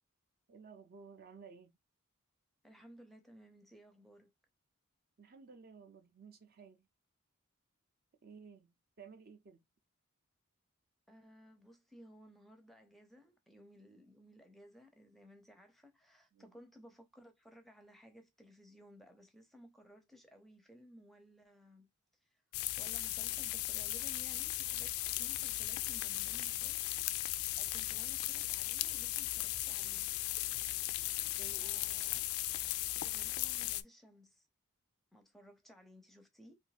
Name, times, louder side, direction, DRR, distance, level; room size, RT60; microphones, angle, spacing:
voice 1, 0.5-1.7 5.2-6.9 8.2-9.6 16.3-16.6 31.3-31.9, right 5 dB, 45° right, 0.6 m, -55 dB
voice 2, 2.6-4.3 11.1-21.9 22.2-22.4 22.8-26.8 27.6-30.1 31.3-32.2 33.0-34.5 35.1-36.6, equal, ahead, 0.6 m, -59 dB
sound 1, 22.5-33.8, left 15 dB, 70° left, 0.3 m, -37 dB
2.6 x 2.6 x 4.0 m
head